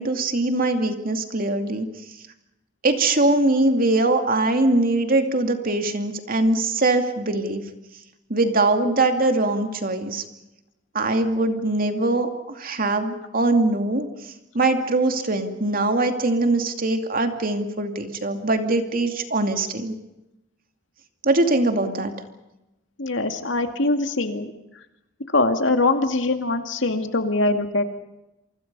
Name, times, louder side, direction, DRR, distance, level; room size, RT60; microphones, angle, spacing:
voice 1, 0.0-1.9 2.8-7.6 8.3-10.2 10.9-12.3 12.6-14.1 14.5-19.9 21.2-22.1, right 2 dB, 50° right, 6 dB, 2.5 m, -22 dB
voice 2, 23.0-24.5 25.3-27.8, left 2 dB, 75° left, 6 dB, 2.3 m, -22 dB
27.5 x 25.5 x 5.5 m, 0.94 s
head